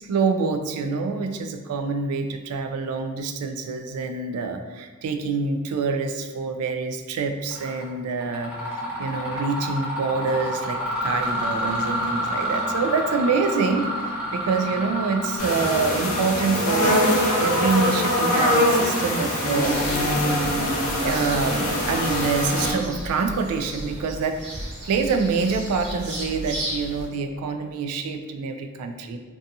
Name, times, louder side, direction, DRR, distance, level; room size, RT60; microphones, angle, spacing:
voice 1, 0.1-17.0 17.4-20.3 21.0-29.2, right 4 dB, 75° right, 10 dB, 0.3 m, -26 dB
Mechanisms, 7.5-7.8 8.2-18.8, equal, 5° right, 0.5 m, -30 dB
sound 1, 15.4-22.7, left 1 dB, 75° left, 0.7 m, -23 dB
sound 2, 19.6-27.1, right 1 dB, 55° right, 0.7 m, -35 dB
2.6 x 2.3 x 2.6 m, 1.4 s
head